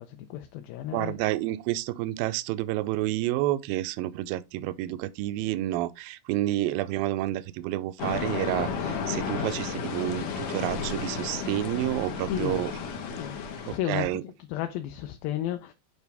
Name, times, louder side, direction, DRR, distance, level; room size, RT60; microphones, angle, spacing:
voice 1, 0.0-1.2 12.2-12.7 13.2-15.7, left 12 dB, 80° left, 2.4 m, -33 dB
voice 2, 0.9-12.7 13.9-14.2, right 15 dB, 80° right, 2.2 m, -29 dB
sound 1, 8.0-13.8, left 5 dB, 60° left, 2.0 m, -33 dB
8.1 x 4.8 x 3.4 m
omnidirectional pair, 4.4 m